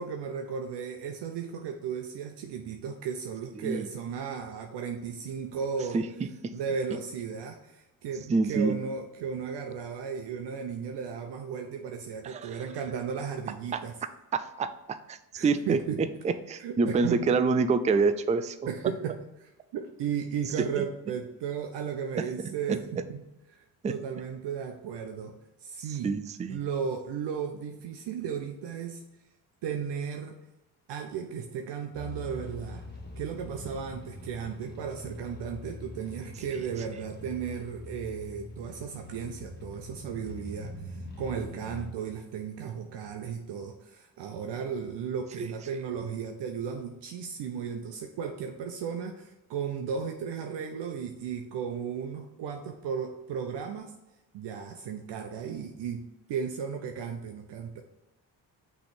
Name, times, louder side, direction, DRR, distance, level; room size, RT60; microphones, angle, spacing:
voice 1, 0.0-6.0 6.5-14.0 15.3-16.0 16.6-17.3 18.7-23.2 23.5-25.3 25.6-26.1 26.5-29.0 29.6-30.4 30.9-32.8 33.2-53.9 54.3-56.0 56.3-57.8, right 7 dB, 65° right, 4 dB, 0.7 m, -35 dB
voice 2, 8.3-8.7 12.2-12.6 13.7-13.8 14.3-15.8 16.2-18.6 20.8-20.9 22.2-22.3 22.7-22.8 23.8-23.9 26.0-26.6 45.4-45.5, right 4 dB, 15° right, 11 dB, 0.4 m, -27 dB
sound 1, 31.9-41.9, left 1 dB, 20° left, 1.2 m, -43 dB
6.0 x 3.3 x 5.1 m, 0.96 s
supercardioid pair, 60°, 45 cm